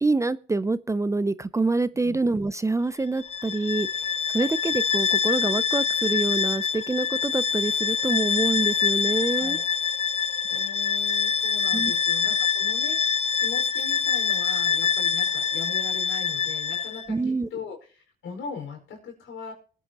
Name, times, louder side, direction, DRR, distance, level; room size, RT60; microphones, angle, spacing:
voice 1, 0.0-9.6 11.7-11.9 17.1-17.5, right 3 dB, 15° right, 0.5 m, -26 dB
Bowed string instrument, 3.2-17.1, left 7 dB, 35° left, 0.7 m, -25 dB
voice 2, 10.5-13.0 13.4-19.5, left 5 dB, 80° left, 5.1 m, -40 dB
20.5 x 9.2 x 2.9 m
cardioid pair, 90°, 20 cm